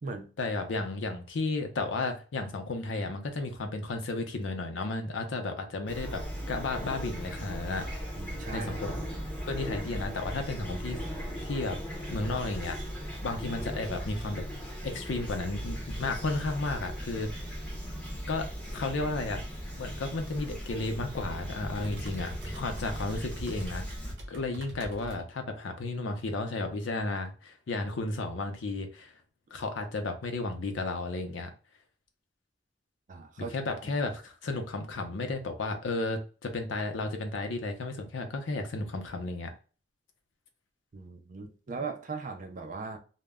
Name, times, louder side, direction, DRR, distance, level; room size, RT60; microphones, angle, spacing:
voice 1, 0.4-8.0 8.5-9.0 9.5-11.0 11.4-11.8 12.0-12.8 13.2-14.4 14.8-17.5 18.3-18.5 18.7-19.4 19.8-23.8 24.3-29.1 29.5-31.5 33.5-39.5, left 2 dB, 85° left, 0.5 m, -33 dB
Fowl / Chirp tweet, 5.9-24.1, equal, 5° left, 0.7 m, -38 dB
voice 2, 8.2-8.8 33.1-33.7 40.9-43.0, right 4 dB, 40° right, 0.4 m, -39 dB
sound 1, 19.5-25.2, equal, 80° right, 0.9 m, -46 dB
2.1 x 2.0 x 3.4 m
head